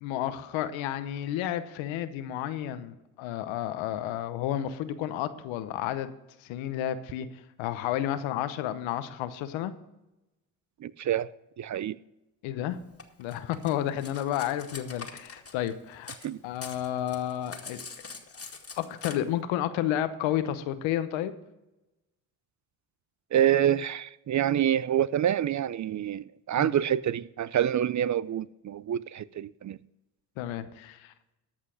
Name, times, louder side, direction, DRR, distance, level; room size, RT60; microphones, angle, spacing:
voice 1, 0.0-6.1 6.4-7.3 7.6-9.7 12.4-12.8 13.2-16.2 16.4-17.8 18.8-21.3 26.6-26.7 30.4-31.1, left 11 dB, 85° left, 0.9 m, -31 dB
voice 2, 10.8-11.3 11.6-12.0 16.2-16.4 23.3-29.8, right 10 dB, 40° right, 0.5 m, -27 dB
Cutlery silverware, 13.0-16.3 16.5-19.1, left 4 dB, 30° left, 2.0 m, -43 dB
13.5 x 5.7 x 6.3 m
supercardioid pair, 60°, 45 cm